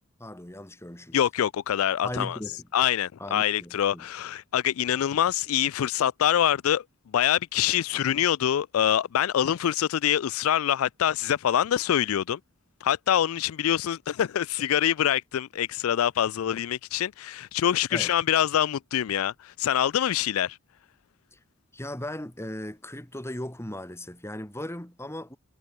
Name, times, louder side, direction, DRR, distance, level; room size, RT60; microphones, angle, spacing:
voice 1, 0.2-1.2 2.0-2.9 3.2-4.1 17.9-18.1 21.3-21.4 21.7-25.4, left 1 dB, 15° left, 3.0 m, -37 dB
voice 2, 1.1-2.4 2.7-6.8 7.1-12.4 12.8-20.6, left 10 dB, 90° left, 0.4 m, -25 dB
head